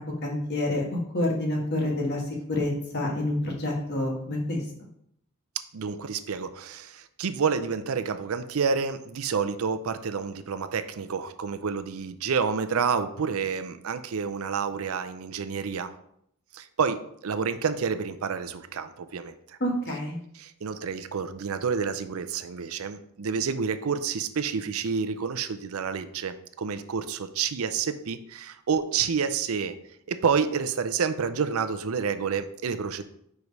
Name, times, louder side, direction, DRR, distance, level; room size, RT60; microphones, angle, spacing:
voice 1, 0.2-2.2 2.5-4.6 19.6-20.2, left 1 dB, 50° left, -1 dB, 1.7 m, -28 dB
voice 2, 5.7-15.9 16.5-19.6 20.3-29.8 30.1-33.0, right 6 dB, 70° right, 10 dB, 0.5 m, -29 dB
4.9 x 4.7 x 5.4 m, 0.72 s
head